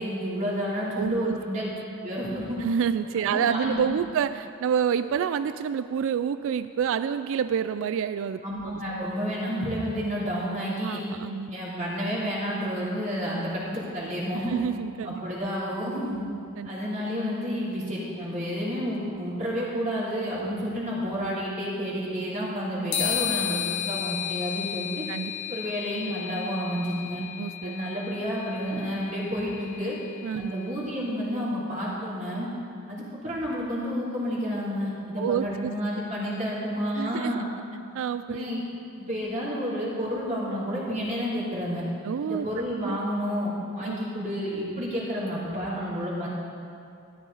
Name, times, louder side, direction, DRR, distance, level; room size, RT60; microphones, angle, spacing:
voice 1, 0.0-1.7 2.0-2.6 3.1-3.9 8.4-11.0 11.5-14.5 15.0-16.2 16.6-25.0 25.5-27.2 27.6-29.9 30.3-32.5 32.9-37.5 38.3-38.6 39.1-41.8 42.2-46.3, equal, 35° right, -7 dB, 3.1 m, -30 dB
voice 2, 0.9-1.4 2.6-8.8 10.8-11.5 14.5-15.2 16.6-16.7 25.1-25.3 27.4-27.8 30.2-30.5 35.2-35.7 37.0-37.4 37.9-38.4 42.0-42.5 42.8-43.0 43.8-44.0, right 7 dB, 65° right, 12 dB, 0.3 m, -28 dB
sound 1, 22.9-30.6, left 10 dB, 55° left, 1.3 m, -33 dB
13.5 x 12.0 x 4.0 m, 2.5 s
head